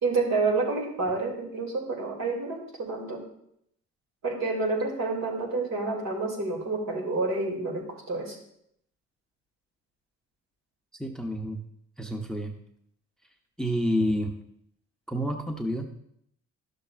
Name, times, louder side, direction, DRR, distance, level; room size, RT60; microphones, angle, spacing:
voice 1, 0.0-3.2 4.2-8.4, right 3 dB, 60° right, 0 dB, 2.6 m, -29 dB
voice 2, 11.0-11.6 12.0-12.5 13.6-14.3 15.1-15.9, equal, ahead, 3 dB, 0.7 m, -29 dB
11.5 x 6.7 x 2.4 m, 0.72 s
cardioid pair, 90°, 30 cm